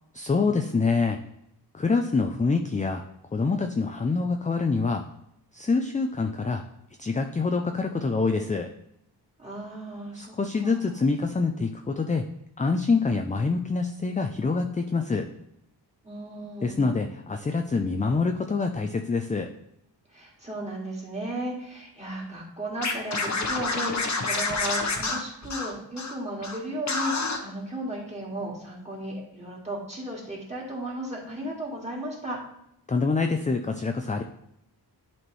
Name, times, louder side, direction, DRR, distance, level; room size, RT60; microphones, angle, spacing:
voice 1, 0.1-1.2 1.7-3.0 3.3-5.0 5.5-6.6 7.0-8.7 10.2-12.2 12.6-15.3 16.6-19.5 32.9-34.2, left 4 dB, 20° left, 5 dB, 0.4 m, -26 dB
voice 2, 9.4-10.4 10.6-11.0 16.0-17.1 20.1-32.4, right 1 dB, 15° right, -4 dB, 2.2 m, -35 dB
Scratching (performance technique), 22.8-26.1 26.4-26.6 26.9-27.4, left 3 dB, 40° left, 1.0 m, -28 dB
11.0 x 4.3 x 3.2 m, 0.79 s
wide cardioid pair, 130°, 41 cm